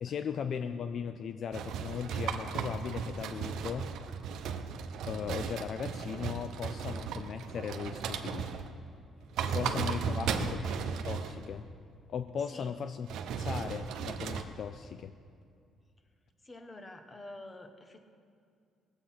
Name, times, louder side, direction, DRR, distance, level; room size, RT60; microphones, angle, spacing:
voice 1, 0.0-3.9 5.1-8.5 9.5-11.7 12.1-13.1 13.4-15.1, left 7 dB, 60° left, 9 dB, 0.4 m, -37 dB
sound 1, 1.5-8.8 9.2-11.5 13.1-14.4, right 6 dB, 75° right, 0.8 m, -36 dB
voice 2, 9.4-10.5 12.5-12.7 16.4-18.0, left 2 dB, 25° left, 6 dB, 1.4 m, -48 dB
19.0 x 8.0 x 5.9 m, 2.3 s
cardioid pair, 80°, 0 cm